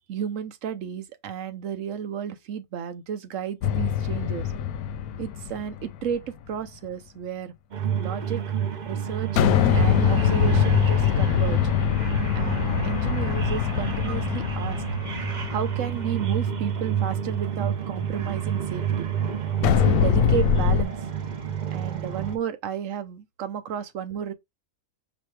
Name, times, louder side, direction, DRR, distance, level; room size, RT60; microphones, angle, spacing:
voice 1, 0.1-4.5 5.2-7.5 8.0-8.4 8.8-9.5 9.7-11.7 12.3-14.8 15.5-19.1 19.6-21.0 21.7-24.3, right 8 dB, 65° right, 1.1 m, -33 dB
sound 1, 3.6-6.2 9.4-16.6 19.6-20.8, left 8 dB, 90° left, 1.1 m, -23 dB
sound 2, 7.7-22.4, right 8 dB, 40° right, 0.7 m, -29 dB
5.1 x 3.0 x 3.2 m
omnidirectional pair, 1.5 m